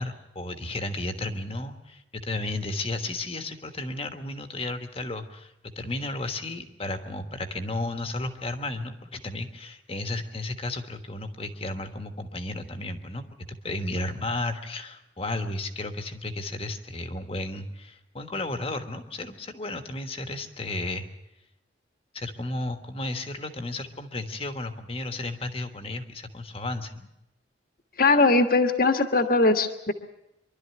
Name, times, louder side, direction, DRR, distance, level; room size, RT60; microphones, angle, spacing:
voice 1, 0.0-13.3 13.6-21.1 22.1-27.1, left 2 dB, 30° left, 7 dB, 1.4 m, -33 dB
voice 2, 28.0-29.9, left 3 dB, 50° left, 7 dB, 1.4 m, -20 dB
25.0 x 12.0 x 9.5 m, 0.88 s
head